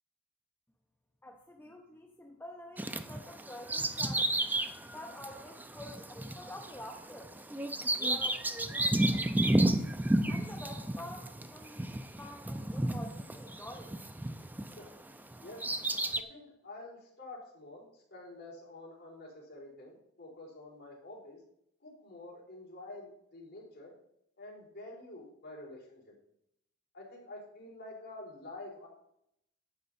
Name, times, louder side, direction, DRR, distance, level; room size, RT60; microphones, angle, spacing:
voice 1, 1.2-4.3 4.9-9.8 10.3-14.0, left 1 dB, 10° left, 1 dB, 0.8 m, -48 dB
Bird vocalization bird call bird song, 2.8-14.9 15.3-16.2, right 1 dB, 10° right, 0.4 m, -32 dB
voice 2, 14.7-15.6 16.1-21.4 21.8-23.9 24.4-26.1 26.9-28.9, left 2 dB, 50° left, -3 dB, 4.2 m, -48 dB
11.5 x 7.9 x 4.2 m, 0.74 s
head